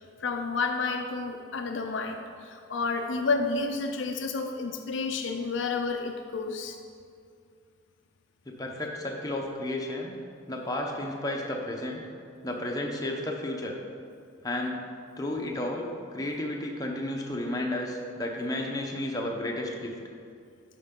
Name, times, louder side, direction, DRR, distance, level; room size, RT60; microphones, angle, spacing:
voice 1, 0.2-6.8, left 4 dB, 60° left, 4 dB, 0.5 m, -30 dB
voice 2, 8.5-10.2 10.5-12.0 12.4-13.8 14.4-14.8 15.2-19.9, left 1 dB, 15° left, 0 dB, 0.7 m, -32 dB
12.0 x 4.5 x 3.7 m, 2.3 s
head